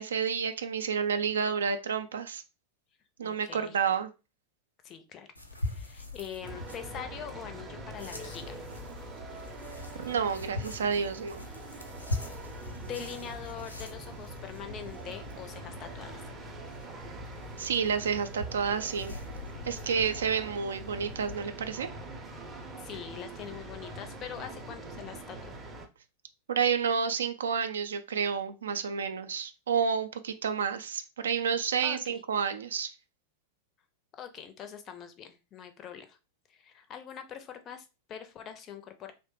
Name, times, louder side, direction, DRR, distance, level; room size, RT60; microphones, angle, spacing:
voice 1, 0.0-2.4 3.2-4.1 10.0-11.5 17.6-19.1 19.6-21.9 26.5-32.9, right 6 dB, 65° right, 9 dB, 0.4 m, -30 dB
voice 2, 3.2-3.8 4.8-5.3 5.6-8.6 12.1-12.4 12.8-16.2 22.5-25.6 31.8-32.2 34.1-36.2 36.5-39.1, left 8 dB, 30° left, 8 dB, 0.5 m, -43 dB
sound 1, 5.3-21.3, left 2 dB, 85° left, 0.5 m, -42 dB
sound 2, 6.4-25.9, right 2 dB, 20° right, 0.6 m, -44 dB
2.9 x 2.1 x 3.1 m, 0.29 s
figure-of-eight pair, 90°, 0 cm